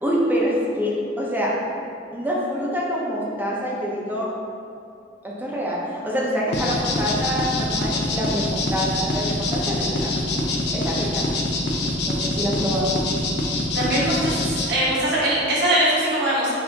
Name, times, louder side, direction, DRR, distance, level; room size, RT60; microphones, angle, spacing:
voice 1, 0.0-1.5 2.1-4.3 5.2-10.1 10.7-11.3 12.0-12.9, equal, 10° right, -5 dB, 0.7 m, -26 dB
sound 1, 6.5-14.7, left 2 dB, 65° left, 0.6 m, -24 dB
voice 2, 13.7-16.5, right 1 dB, 65° right, -7 dB, 1.3 m, -21 dB
6.6 x 2.7 x 2.7 m, 2.6 s
head